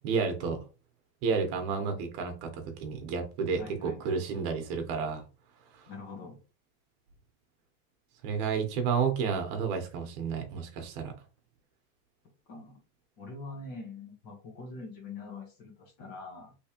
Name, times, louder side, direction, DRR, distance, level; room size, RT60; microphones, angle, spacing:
voice 1, 0.0-0.6 1.2-5.2 5.7-5.9 8.2-11.1, right 5 dB, 50° right, 5 dB, 1.1 m, -31 dB
voice 2, 3.6-4.2 5.9-6.4 12.5-12.8 13.2-16.5, left 3 dB, 40° left, 0 dB, 1.3 m, -44 dB
3.4 x 3.1 x 2.9 m, 0.33 s
supercardioid pair, 165°, 44 cm